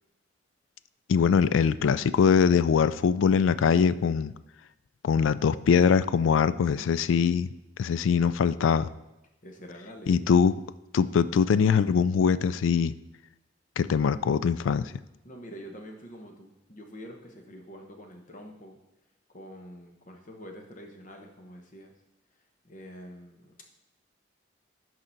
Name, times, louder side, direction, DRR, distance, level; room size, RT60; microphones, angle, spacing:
voice 1, 1.1-4.3 5.0-7.5 7.8-8.9 10.1-10.5 10.9-12.9 13.8-14.9, left 6 dB, 90° left, 15 dB, 0.3 m, -22 dB
voice 2, 9.4-10.3 15.2-18.8 19.3-21.9 22.6-23.6, equal, 45° left, 3 dB, 1.0 m, -46 dB
6.5 x 4.8 x 5.8 m, 0.94 s
head